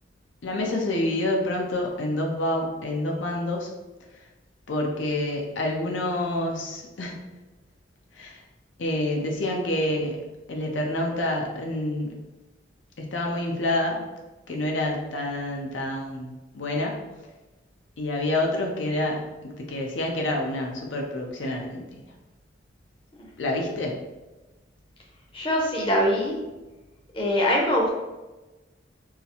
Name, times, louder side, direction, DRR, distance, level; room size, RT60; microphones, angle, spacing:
voice 1, 0.4-3.7 4.7-7.2 8.1-8.4 8.8-10.2 10.5-12.1 13.0-14.1 14.5-16.9 18.0-19.2 19.6-21.9 23.4-24.0, left 1 dB, 85° left, 0 dB, 0.6 m, -27 dB
voice 2, 25.3-26.4 27.1-27.9, equal, 30° left, -2 dB, 0.6 m, -23 dB
3.9 x 2.0 x 2.8 m, 1.1 s
head